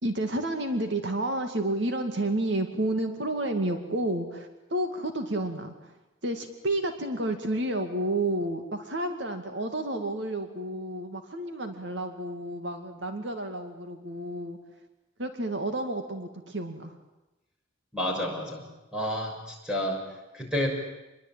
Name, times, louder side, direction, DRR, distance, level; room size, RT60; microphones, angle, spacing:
voice 1, 0.0-5.7 6.2-14.6 15.2-17.0, right 1 dB, 65° right, 6 dB, 2.3 m, -30 dB
voice 2, 17.9-18.7 18.9-20.1 20.3-20.7, left 1 dB, 5° right, 0 dB, 6.5 m, -30 dB
27.0 x 22.0 x 9.1 m, 0.97 s
head